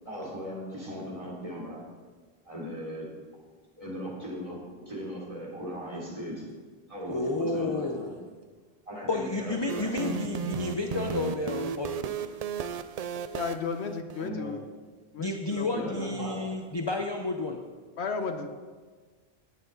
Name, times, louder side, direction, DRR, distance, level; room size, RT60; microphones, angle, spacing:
voice 1, 0.0-1.9 2.4-3.1 3.8-4.6 4.9-6.5 6.9-8.1 8.9-10.7 14.2-14.5 15.7-16.4, equal, 30° right, -4 dB, 3.4 m, -38 dB
voice 2, 7.1-8.1 9.1-12.3 15.2-17.6, left 2 dB, 30° left, 3 dB, 0.7 m, -31 dB
sound 1, 9.7-14.3, right 6 dB, 55° right, 0.4 m, -35 dB
voice 3, 13.3-14.6 15.1-16.3 18.0-18.5, left 5 dB, 85° left, 7 dB, 1.2 m, -34 dB
17.5 x 9.1 x 4.0 m, 1.4 s
omnidirectional pair, 1.1 m